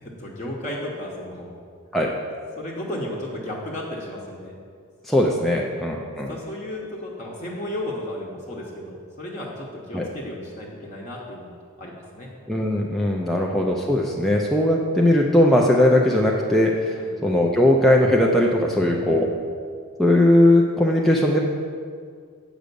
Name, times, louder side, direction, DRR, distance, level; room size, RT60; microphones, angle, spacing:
voice 1, 0.0-1.5 2.0-2.1 2.6-4.6 6.3-12.3 17.0-17.2 18.7-19.4, left 1 dB, 30° left, -4 dB, 1.0 m, -34 dB
voice 2, 5.1-6.3 9.9-10.1 12.5-16.9 17.2-19.3 20.0-21.4, left 1 dB, ahead, -2 dB, 0.4 m, -19 dB
8.1 x 5.0 x 6.8 m, 2.1 s
head